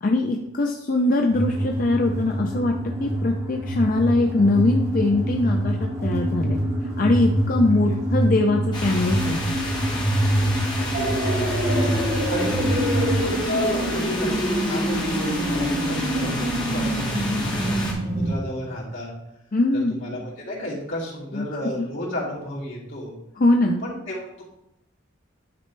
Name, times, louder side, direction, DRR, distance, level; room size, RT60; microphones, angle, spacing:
voice 1, 0.0-2.7 3.0-6.6 7.0-9.5 19.5-20.0 21.3-21.5 23.4-23.8, left 2 dB, 45° left, 2 dB, 0.4 m, -22 dB
sound 1, 1.3-13.2, right 1 dB, 15° right, 1.6 m, -25 dB
sound 2, 8.7-17.9, left 1 dB, 20° left, 1.4 m, -31 dB
voice 2, 10.3-19.1 20.0-23.1 23.8-24.4, left 1 dB, 75° left, -6 dB, 2.7 m, -33 dB
sound 3, 10.9-18.3, right 1 dB, 50° right, 1.3 m, -26 dB
9.7 x 4.2 x 3.2 m, 0.83 s
head